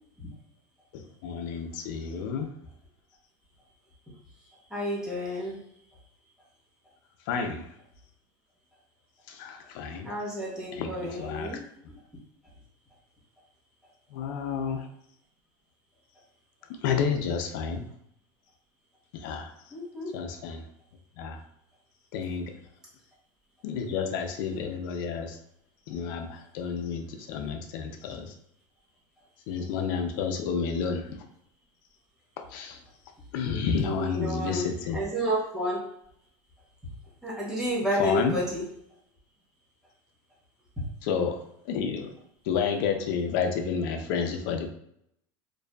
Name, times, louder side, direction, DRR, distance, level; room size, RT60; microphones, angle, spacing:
voice 1, 0.9-2.5 7.3-7.7 9.3-10.1 10.7-11.5 14.1-14.9 16.8-17.8 19.1-19.5 20.1-20.6 21.2-21.4 22.1-22.5 23.6-25.4 25.9-28.3 29.5-31.1 32.5-32.8 33.3-35.0 38.0-38.4 41.0-41.4 41.6-42.1 42.4-44.7, left 6 dB, 70° left, 5 dB, 0.4 m, -30 dB
voice 2, 4.7-5.6 10.0-11.6 19.7-20.1 33.8-35.8 37.2-38.6, right 1 dB, 5° right, -7 dB, 1.0 m, -30 dB
2.6 x 2.3 x 2.2 m, 0.73 s
supercardioid pair, 125°, 11 cm